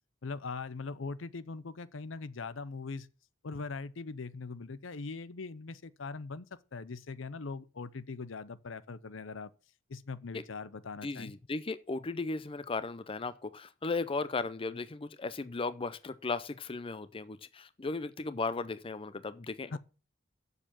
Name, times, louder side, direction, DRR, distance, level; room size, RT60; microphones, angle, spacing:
voice 1, 0.2-3.1 3.4-6.5 6.7-9.5 9.9-11.3 19.7-19.8, left 4 dB, 80° left, 0.7 m, -41 dB
voice 2, 11.0-19.8, left 3 dB, 30° left, 0.5 m, -36 dB
7.3 x 6.8 x 7.4 m
head